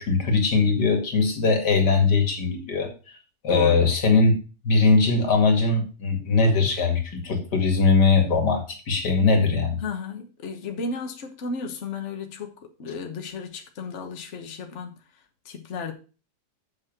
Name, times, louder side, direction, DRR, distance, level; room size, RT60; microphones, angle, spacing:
voice 1, 0.0-3.2 3.4-4.4 4.6-9.8, left 4 dB, 85° left, 2.6 m, -21 dB
voice 2, 3.5-3.9 9.8-14.9 15.4-15.9, left 4 dB, 50° left, 1.5 m, -33 dB
7.4 x 6.3 x 6.1 m
omnidirectional pair, 1.7 m